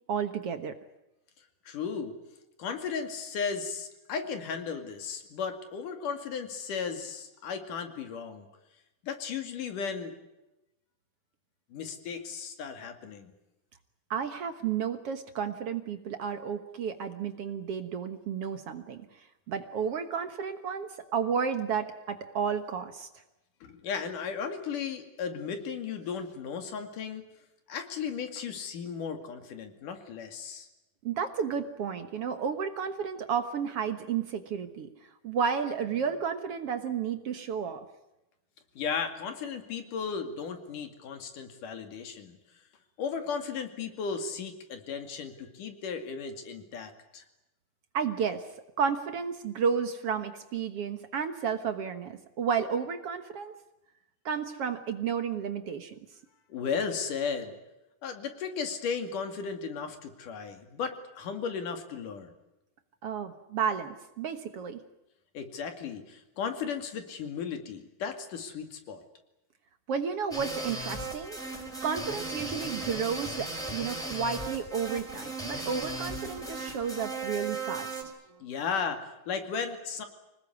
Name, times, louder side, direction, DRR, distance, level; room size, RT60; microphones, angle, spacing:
voice 1, 0.1-0.8 14.1-19.1 19.5-23.1 31.0-34.9 35.2-37.9 47.9-48.4 48.8-53.5 54.3-56.0 63.0-64.8 69.9-78.1, right 6 dB, 55° right, 9 dB, 2.0 m, -32 dB
voice 2, 1.7-2.2 2.6-8.5 9.0-10.1 11.7-13.3 23.6-27.3 27.7-30.7 38.8-42.4 43.0-47.2 56.5-57.5 58.0-62.3 65.3-69.0 78.4-80.1, left 6 dB, 85° left, 6 dB, 3.9 m, -35 dB
sound 1, 70.3-78.0, right 2 dB, ahead, 5.0 m, -36 dB
25.5 x 19.5 x 9.5 m, 0.94 s
omnidirectional pair, 3.6 m